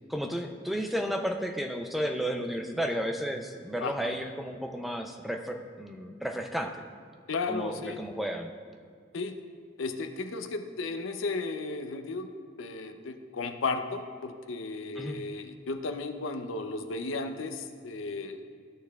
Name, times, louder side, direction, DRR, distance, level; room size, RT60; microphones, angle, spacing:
voice 1, 0.1-6.8 7.5-8.5 15.0-15.2, equal, ahead, 4 dB, 0.4 m, -33 dB
voice 2, 3.8-4.1 7.3-8.0 9.1-9.4 9.8-12.3 12.6-18.4, left 3 dB, 75° left, 7 dB, 0.6 m, -34 dB
13.5 x 6.5 x 2.3 m, 2.2 s
head